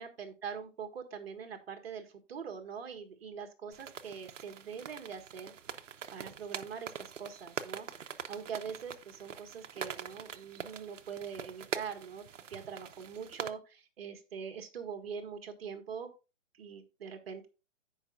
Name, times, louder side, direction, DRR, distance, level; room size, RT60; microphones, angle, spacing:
voice 1, 0.0-5.5 6.1-16.1 16.5-17.5, right 6 dB, 55° right, 6 dB, 1.7 m, -43 dB
sound 1, 3.7-13.5, right 8 dB, 80° right, 0.9 m, -44 dB
15.5 x 5.2 x 2.4 m, 0.30 s
hypercardioid pair, 160°, 37 cm